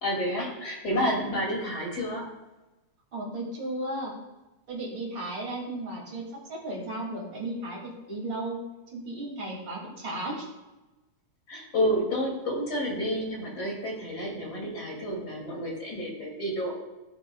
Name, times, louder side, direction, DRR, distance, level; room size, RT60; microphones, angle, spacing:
voice 1, 0.0-2.3 11.5-16.7, equal, 35° left, -2 dB, 2.7 m, -30 dB
voice 2, 3.1-4.1 4.7-8.6 8.9-10.5, right 1 dB, 40° right, -3 dB, 3.0 m, -35 dB
16.0 x 7.0 x 2.3 m, 1.1 s
omnidirectional pair, 3.3 m